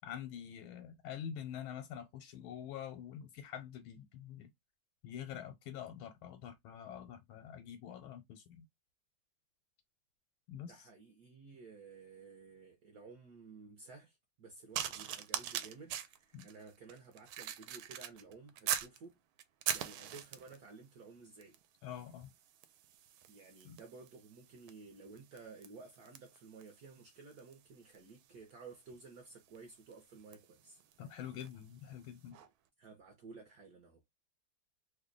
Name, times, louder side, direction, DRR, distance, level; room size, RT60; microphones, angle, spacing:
voice 1, 0.0-4.5 5.0-8.7 10.5-10.9 16.3-16.4 21.8-22.3 23.6-23.8 31.0-32.4, left 9 dB, 85° left, 1.4 m, -46 dB
voice 2, 10.6-19.2 19.7-21.6 23.3-30.8 32.8-34.0, right 4 dB, 60° right, 1.0 m, -54 dB
sound 1, 14.7-19.0 19.4-20.6 21.4-21.7 21.9-31.6 32.3-32.5, right 10 dB, 80° right, 1.4 m, -43 dB
3.3 x 2.1 x 3.7 m
omnidirectional pair, 2.3 m